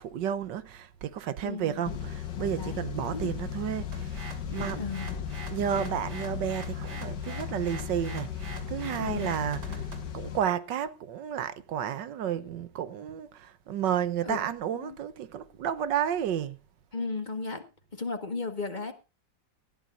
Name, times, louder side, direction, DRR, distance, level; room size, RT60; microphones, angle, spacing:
voice 1, 0.0-4.2 4.5-4.8 5.5-9.9 10.1-16.6, right 9 dB, 90° right, 1.6 m, -32 dB
voice 2, 1.4-1.8 2.6-2.8 3.1-3.3 4.7-5.1 9.0-9.3 14.2-14.4 14.7-15.0 16.9-17.6 17.9-18.9, left 4 dB, 25° left, 1.7 m, -35 dB
sound 1, 1.8-10.4, left 9 dB, 80° left, 2.1 m, -36 dB
sound 2, 3.9-10.1, right 2 dB, 70° right, 3.0 m, -43 dB
19.0 x 13.5 x 2.6 m
omnidirectional pair, 1.9 m